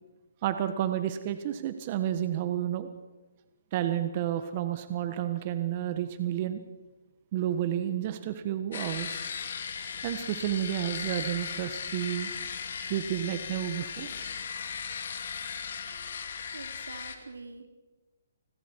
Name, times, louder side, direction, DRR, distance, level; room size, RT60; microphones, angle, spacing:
voice 1, 0.4-2.9 3.7-6.6 7.3-9.2 10.0-12.3 12.9-14.1, right 11 dB, 40° right, 9 dB, 1.5 m, -31 dB
sound 1, 8.7-17.2, left 6 dB, 60° left, 2.6 m, -37 dB
voice 2, 16.5-17.7, right 3 dB, 85° right, 6 dB, 3.1 m, -45 dB
30.0 x 20.5 x 4.7 m, 1.2 s
hypercardioid pair, 145°, 0 cm